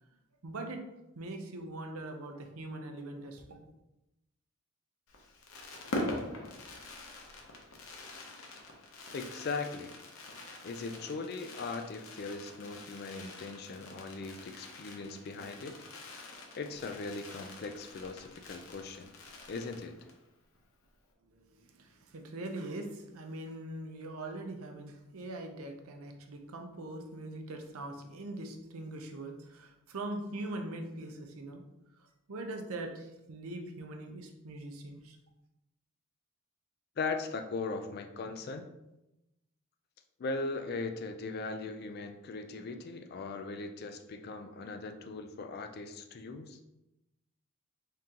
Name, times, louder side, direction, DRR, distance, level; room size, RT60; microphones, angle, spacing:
voice 1, 0.4-0.8 1.1-3.7 21.3-31.6 31.9-35.2, right 2 dB, 75° right, 4 dB, 0.6 m, -42 dB
Fireworks, 5.1-20.3 20.5-20.6 20.8-21.1, left 2 dB, 70° left, 0.7 m, -44 dB
voice 2, 9.1-9.9 10.6-15.8 16.2-16.3 16.6-19.1 19.5-20.0 37.0-38.7 40.2-46.6, left 3 dB, 45° left, 6 dB, 0.3 m, -39 dB
3.7 x 3.7 x 2.8 m, 0.93 s
head